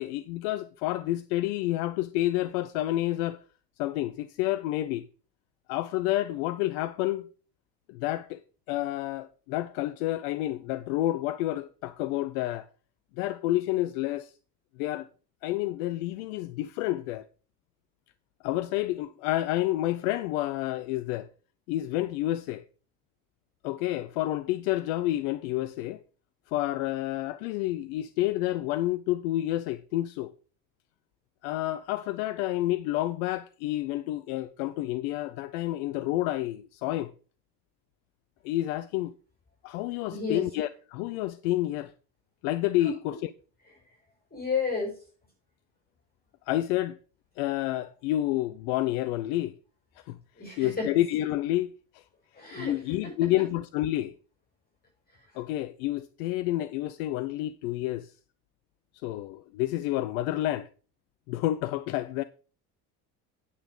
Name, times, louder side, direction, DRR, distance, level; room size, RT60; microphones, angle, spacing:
voice 1, 0.0-3.4 3.8-5.1 5.7-7.3 7.9-8.4 8.7-12.7 13.2-14.3 14.8-15.1 15.4-17.3 18.4-21.3 21.7-22.6 23.6-26.0 26.5-30.3 31.4-37.1 38.4-39.1 39.6-41.9 42.4-43.3 46.5-47.0 47.4-49.6 50.1-50.2 50.6-51.7 52.6-54.1 55.3-58.1 59.0-60.7 61.3-62.2, left 15 dB, 65° left, 0.7 m, -29 dB
voice 2, 40.1-40.5 42.8-42.9 44.3-45.0 50.4-51.0 52.3-53.1, left 4 dB, 20° left, 5.9 m, -32 dB
9.0 x 6.4 x 5.2 m
hypercardioid pair, 65°, 45 cm